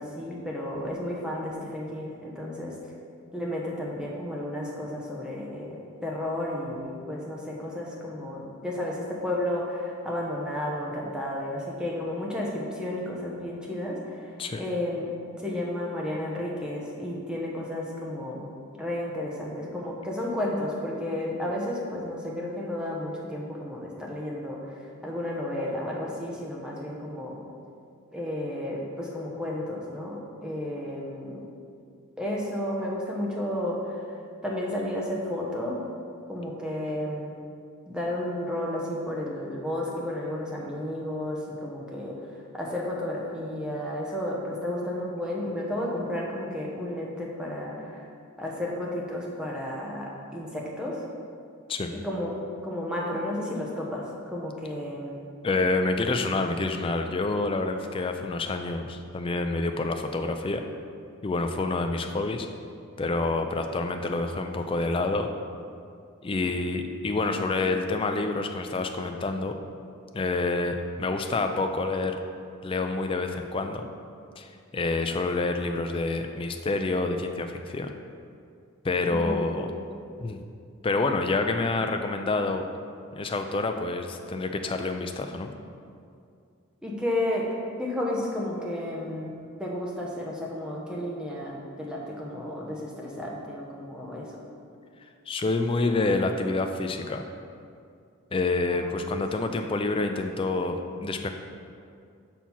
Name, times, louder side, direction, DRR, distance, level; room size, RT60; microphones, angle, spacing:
voice 1, 0.0-2.7 3.3-14.3 14.6-15.1 15.4-18.5 18.8-24.6 25.0-27.4 28.1-31.5 32.2-34.0 34.4-35.8 36.3-37.3 37.9-42.3 42.5-48.0 48.4-51.0 51.9-52.3 52.6-55.2 79.1-79.5 86.8-87.5 87.8-89.3 89.6-94.3 98.7-99.2, left 1 dB, 5° right, -3 dB, 0.8 m, -32 dB
voice 2, 55.4-60.6 61.2-62.5 63.0-65.3 66.2-69.6 70.1-72.2 72.6-73.9 74.4-77.9 78.8-79.7 80.2-80.4 80.8-82.6 83.1-85.5 95.3-97.2 98.3-101.3, left 3 dB, 25° left, 5 dB, 0.3 m, -27 dB
6.0 x 4.4 x 5.5 m, 2.4 s
head